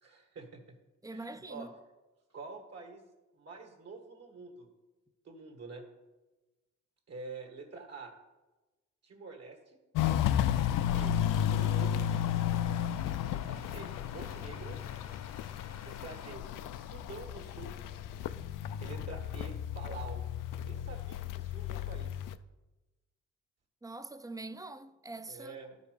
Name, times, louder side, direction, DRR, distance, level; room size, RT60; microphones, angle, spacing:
voice 1, 0.0-0.6 1.1-1.7 2.3-3.0 3.3-4.7 5.2-5.8 7.1-8.1 9.0-9.8 10.9-11.1 11.5-12.1 13.3-14.8 15.8-17.7 18.8-20.2 20.6-22.2 25.3-25.8, right 4 dB, 50° right, 1.6 m, -47 dB
voice 2, 1.0-1.7 23.8-25.6, right 2 dB, 10° right, 0.4 m, -44 dB
Walk footsteps, 9.9-22.4, left 10 dB, 80° left, 0.5 m, -33 dB
sound 1, 10.3-16.4, left 6 dB, 55° left, 0.8 m, -51 dB
11.5 x 5.1 x 5.0 m
cardioid pair, 95°, 32 cm